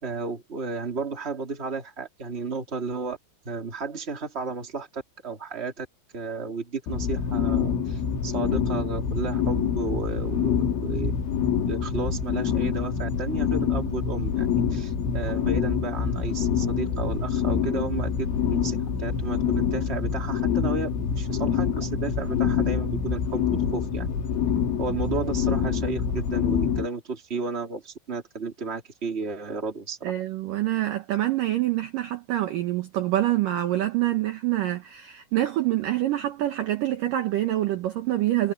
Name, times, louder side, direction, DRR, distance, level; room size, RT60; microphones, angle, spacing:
voice 1, 0.0-3.2 3.4-5.9 6.1-11.2 11.6-24.1 24.8-30.1, right 4 dB, 20° right, 2.2 m, -33 dB
sound 1, 6.9-26.9, left 7 dB, 75° left, 6.7 m, -26 dB
voice 2, 30.0-38.5, right 14 dB, 75° right, 2.0 m, -26 dB
omnidirectional pair, 5.6 m